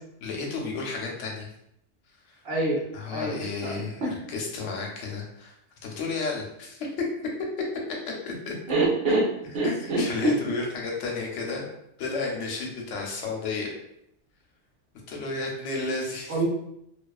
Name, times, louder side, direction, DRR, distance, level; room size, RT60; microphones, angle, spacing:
voice 1, 0.2-1.5 2.1-2.4 2.9-5.6 5.8-7.0 8.1-8.5 9.1-9.2 9.6-11.7 12.0-13.7 15.1-16.4, left 3 dB, 80° left, -1 dB, 0.9 m, -32 dB
voice 2, 2.4-2.8 3.1-3.4 3.6-4.1 8.7-9.2 9.5-10.3 16.3-16.5, right 2 dB, 60° right, -3 dB, 0.7 m, -25 dB
2.3 x 2.3 x 2.2 m, 0.77 s
omnidirectional pair, 1.3 m